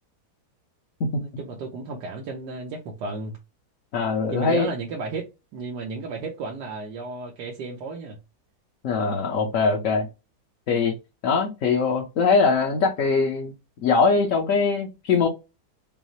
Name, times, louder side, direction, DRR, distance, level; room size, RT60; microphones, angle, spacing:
voice 1, 1.2-3.4 4.3-8.2, right 3 dB, 85° right, 1.4 m, -33 dB
voice 2, 3.9-4.7 8.8-10.1 10.7-10.9 11.2-13.5 13.8-15.3, left 4 dB, 60° left, 1.1 m, -22 dB
5.4 x 2.0 x 3.0 m
omnidirectional pair, 1.8 m